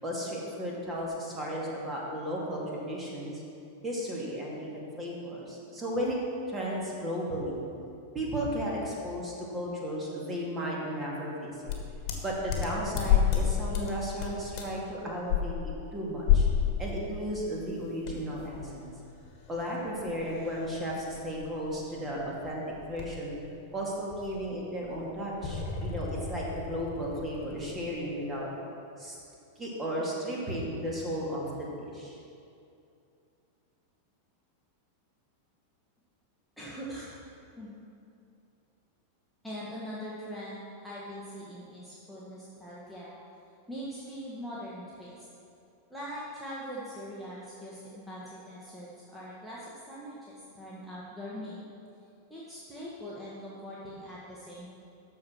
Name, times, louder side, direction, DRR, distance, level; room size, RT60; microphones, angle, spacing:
voice 1, 0.0-3.4 3.8-6.2 6.5-7.7 8.1-11.7 12.2-16.5 16.8-18.9 19.5-22.6 22.9-23.4 23.7-28.5 29.0-29.2 29.6-32.2, equal, 15° right, -4 dB, 2.3 m, -34 dB
sound 1, 11.7-13.5 13.7-13.9 14.2-14.8 15.3-15.4 16.2-16.7 17.1-17.2 18.0-23.3 23.5-23.8 24.1-27.9, left 8 dB, 40° left, 1.6 m, -31 dB
voice 2, 36.6-37.1 37.5-37.8 39.4-43.1 43.7-45.3 45.9-51.6 52.3-54.7, equal, ahead, -9 dB, 1.6 m, -42 dB
13.0 x 4.6 x 6.2 m, 2.6 s
figure-of-eight pair, 90°, 0 cm